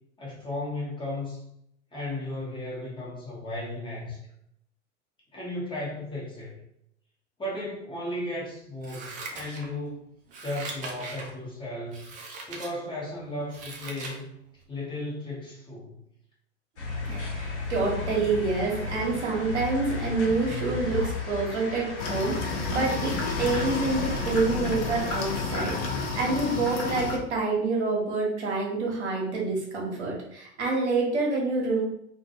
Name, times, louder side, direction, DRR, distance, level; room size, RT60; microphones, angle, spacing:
voice 1, 0.2-1.4 1.9-4.2 5.3-6.6 7.4-10.1 10.4-12.1 12.5-14.3 14.7-16.0, left 1 dB, 15° left, -6 dB, 0.8 m, -35 dB
Scissors, 8.8-9.9 10.3-11.3 11.9-12.7 13.2-14.2 14.6-14.7, right 3 dB, 25° right, 0.4 m, -40 dB
sound 1, 16.8-25.4, left 2 dB, 70° left, 0.9 m, -34 dB
voice 2, 17.1-23.1 23.4-31.8, right 3 dB, 70° right, -2 dB, 0.9 m, -27 dB
sound 2, 22.0-27.2, left 4 dB, 45° left, 0.5 m, -31 dB
2.3 x 2.2 x 2.7 m, 0.74 s
figure-of-eight pair, 85°, 36 cm